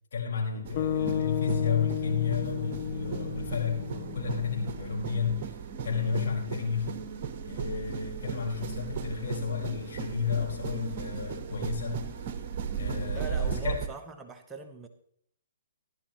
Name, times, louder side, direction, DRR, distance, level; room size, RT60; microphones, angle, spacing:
voice 1, 0.1-5.5 5.8-7.0 7.4-12.1 12.7-13.8, left 6 dB, 65° left, 4.7 m, -32 dB
sound 1, 0.6-13.9, right 7 dB, 40° right, 1.1 m, -36 dB
sound 2, 0.8-5.0, left 10 dB, 40° left, 0.5 m, -33 dB
voice 2, 5.9-6.3 13.1-14.9, right 5 dB, 10° right, 0.9 m, -43 dB
15.5 x 11.5 x 3.0 m
hypercardioid pair, 135°, 0 cm